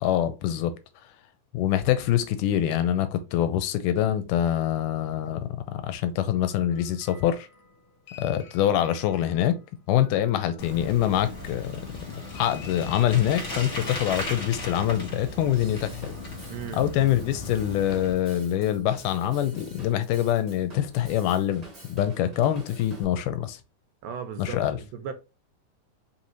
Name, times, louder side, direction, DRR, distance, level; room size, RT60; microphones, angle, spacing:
voice 1, 0.0-0.7 1.5-7.5 8.2-9.6 9.9-11.8 12.3-16.1 16.7-23.6 24.4-24.8, left 11 dB, 80° left, 2.2 m, -25 dB
sound 1, 6.0-11.6 12.1-13.7, left 7 dB, 65° left, 2.0 m, -50 dB
Bicycle, 10.6-18.1, left 2 dB, 50° left, 0.8 m, -36 dB
Drum kit / Drum, 15.5-23.0, equal, 40° right, 0.5 m, -47 dB
voice 2, 16.5-16.9 24.0-25.1, right 7 dB, 80° right, 2.1 m, -36 dB
5.3 x 2.7 x 3.0 m
omnidirectional pair, 3.8 m